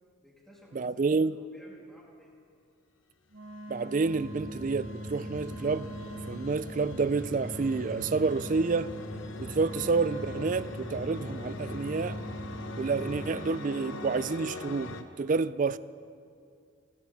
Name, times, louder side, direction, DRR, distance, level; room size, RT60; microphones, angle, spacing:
voice 1, 0.2-2.3, equal, ahead, 2.4 m, -56 dB
voice 2, 0.7-1.4 3.7-5.9 6.3-8.9 9.4-12.2 12.8-15.8, right 4 dB, 40° right, 0.3 m, -29 dB
Wind instrument woodwind instrument, 3.3-14.3, right 2 dB, 70° right, 1.2 m, -44 dB
sound 1, 3.5-15.0, left 3 dB, 65° left, 0.9 m, -45 dB
sound 2, 4.0-13.3, left 1 dB, 45° left, 4.5 m, -41 dB
29.5 x 11.0 x 4.1 m
head